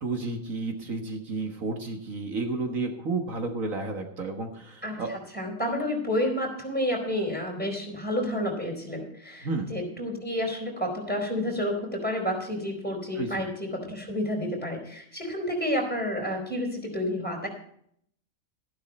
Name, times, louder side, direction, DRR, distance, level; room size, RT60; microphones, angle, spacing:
voice 1, 0.0-5.1 9.4-9.7 13.2-13.4, right 3 dB, 70° right, 4 dB, 1.8 m, -31 dB
voice 2, 4.8-17.5, left 1 dB, 5° left, 1 dB, 4.4 m, -30 dB
13.5 x 11.5 x 4.2 m, 0.66 s
omnidirectional pair, 1.5 m